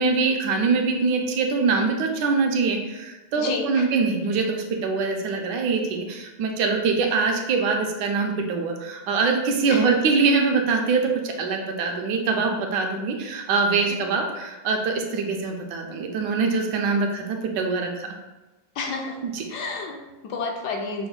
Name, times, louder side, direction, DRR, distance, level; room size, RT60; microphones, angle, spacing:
voice 1, 0.0-18.1 19.2-19.4, right 4 dB, 75° right, 3 dB, 1.2 m, -23 dB
voice 2, 3.4-3.9 9.7-9.9 18.8-19.2 19.5-21.1, left 4 dB, 70° left, 2 dB, 1.1 m, -30 dB
5.7 x 2.1 x 3.9 m, 1.1 s
omnidirectional pair, 2.0 m